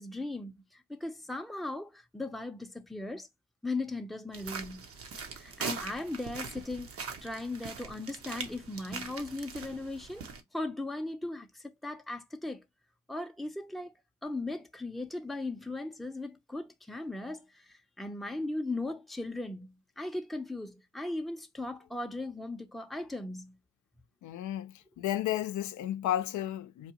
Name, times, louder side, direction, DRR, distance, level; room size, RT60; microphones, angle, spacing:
voice 1, 0.0-3.3 3.6-4.9 5.4-10.2 10.5-12.6 13.1-13.9 14.2-23.6, left 2 dB, ahead, 0.6 m, -38 dB
sound 1, 4.3-10.4, right 5 dB, 50° right, 0.9 m, -41 dB
voice 2, 24.2-26.9, left 12 dB, 70° left, 0.5 m, -33 dB
4.5 x 2.4 x 2.8 m
cardioid pair, 90°, 30 cm